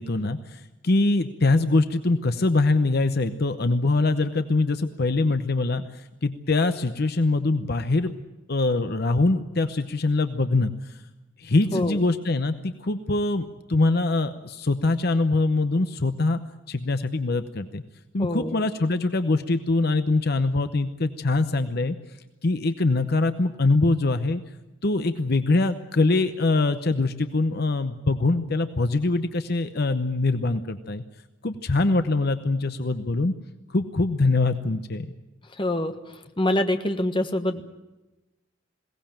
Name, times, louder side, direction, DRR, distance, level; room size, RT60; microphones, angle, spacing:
voice 1, 0.0-8.2 8.5-10.9 11.4-16.4 16.7-17.8 18.1-22.0 22.4-24.4 24.8-31.0 31.4-33.3 33.7-35.1, left 2 dB, 55° left, 9 dB, 0.8 m, -23 dB
voice 2, 18.2-18.6 35.6-37.6, left 1 dB, 25° left, 7 dB, 1.3 m, -26 dB
21.5 x 17.5 x 8.9 m, 1.0 s
head